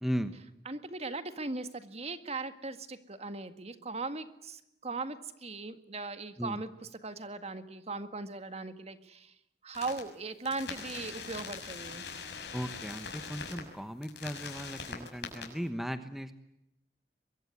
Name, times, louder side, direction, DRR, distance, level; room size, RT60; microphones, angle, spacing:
voice 1, 0.0-0.4 6.4-6.6 12.5-16.3, equal, ahead, 9 dB, 1.2 m, -36 dB
voice 2, 0.7-6.7 7.0-9.3 9.6-12.1, right 3 dB, 35° right, 10 dB, 1.8 m, -39 dB
sound 1, 9.7-10.0 10.4-13.6 14.0-15.4, left 5 dB, 70° left, 6.5 m, -42 dB
23.5 x 23.0 x 9.5 m, 0.83 s
head